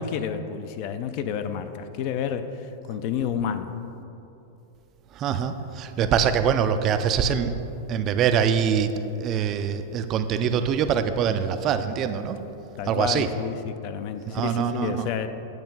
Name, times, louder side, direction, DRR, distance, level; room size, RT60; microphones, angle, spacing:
voice 1, 0.0-3.7 12.8-15.3, left 8 dB, 45° left, 10 dB, 0.4 m, -30 dB
voice 2, 5.1-7.5 7.9-8.9 9.2-12.4 12.9-13.3 14.3-15.1, right 7 dB, 30° right, 9 dB, 0.3 m, -24 dB
8.8 x 3.1 x 5.8 m, 2.9 s
supercardioid pair, 150°, 0 cm